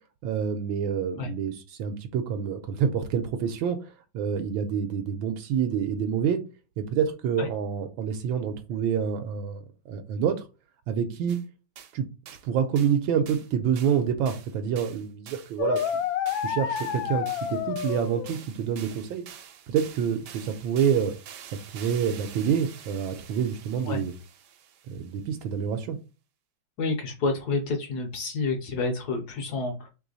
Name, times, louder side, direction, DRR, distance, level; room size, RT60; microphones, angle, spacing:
voice 1, 0.2-6.4 6.8-9.6 9.9-10.3 10.9-11.4 11.9-12.1 12.4-15.8 16.4-19.2 19.7-21.1 21.5-24.1 24.9-26.0, right 7 dB, 85° right, 1.4 m, -27 dB
sound 1, 11.3-11.4 11.8-11.9 12.3-12.5 12.8-13.0 13.3-13.5 13.8-25.3, right 8 dB, 70° right, 1.2 m, -47 dB
sound 2, 15.6-18.4, left 9 dB, 80° left, 1.3 m, -29 dB
voice 2, 26.8-29.9, left 3 dB, 65° left, 1.1 m, -29 dB
3.3 x 3.0 x 3.8 m
omnidirectional pair, 2.1 m